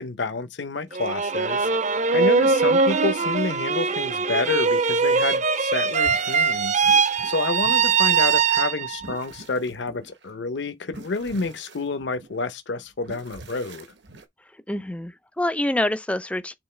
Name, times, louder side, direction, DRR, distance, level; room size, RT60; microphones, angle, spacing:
voice 1, 0.0-6.8 7.2-13.9, left 3 dB, 70° left, 0.7 m, -29 dB
sound 1, 0.9-9.1, right 5 dB, 40° right, 0.5 m, -21 dB
sound 2, 6.0-6.6 6.8-8.4 8.9-10.3 10.9-12.5 13.0-14.3, right 2 dB, 70° right, 1.1 m, -44 dB
voice 2, 14.7-16.5, left 1 dB, 5° left, 0.5 m, -26 dB
7.9 x 3.7 x 3.2 m
head